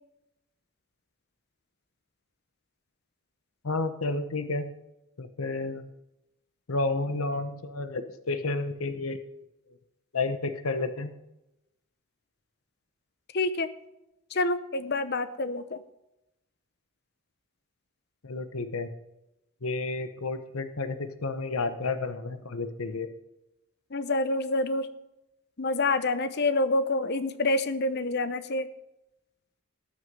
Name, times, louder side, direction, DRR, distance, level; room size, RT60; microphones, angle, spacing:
voice 1, 3.6-4.7 5.2-5.8 6.7-9.2 10.1-11.1 18.2-18.9 19.6-23.1, left 3 dB, 80° left, 9 dB, 1.0 m, -31 dB
voice 2, 13.3-13.7 14.3-15.8 23.9-24.9 25.6-28.7, left 2 dB, 50° left, 12 dB, 0.8 m, -27 dB
18.5 x 6.4 x 5.4 m, 0.93 s
head